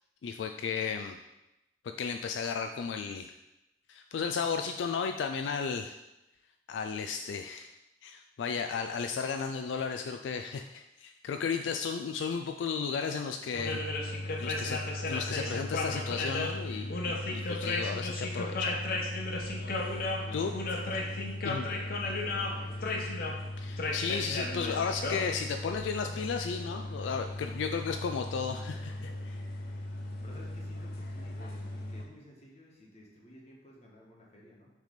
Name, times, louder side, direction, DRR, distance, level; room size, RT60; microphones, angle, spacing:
voice 1, 0.2-1.2 2.0-3.3 3.9-6.0 6.7-7.7 8.0-13.8 14.4-14.8 15.1-18.9 20.3-20.5 21.4-21.7 23.6-29.4, left 5 dB, 75° left, 6 dB, 0.3 m, -34 dB
sound 1, 13.5-32.0, left 2 dB, 55° left, 0.8 m, -35 dB
voice 2, 20.1-21.1 21.6-23.1 29.9-34.7, left 1 dB, 35° left, -2 dB, 1.3 m, -53 dB
6.4 x 3.4 x 5.1 m, 0.94 s
head